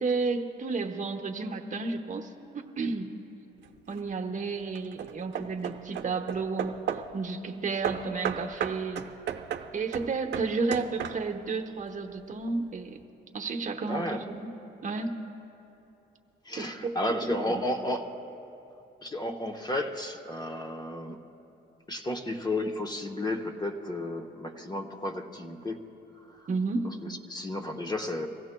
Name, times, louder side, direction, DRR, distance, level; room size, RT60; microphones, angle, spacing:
voice 1, 0.0-3.1 3.9-6.8 7.1-9.1 9.7-13.0 13.3-14.5 14.8-15.1 16.6-17.6 26.5-27.0, right 4 dB, 40° right, 3 dB, 0.9 m, -32 dB
Hammer / Wood, 3.6-4.1 4.7-7.2 7.8-11.5, right 9 dB, 65° right, 0.6 m, -35 dB
voice 2, 13.8-14.2 16.5-18.1 19.0-21.2 21.9-25.8 27.0-28.3, left 1 dB, 20° left, 4 dB, 0.9 m, -33 dB
24.0 x 15.5 x 2.2 m, 2.9 s
cardioid pair, 90°, 20 cm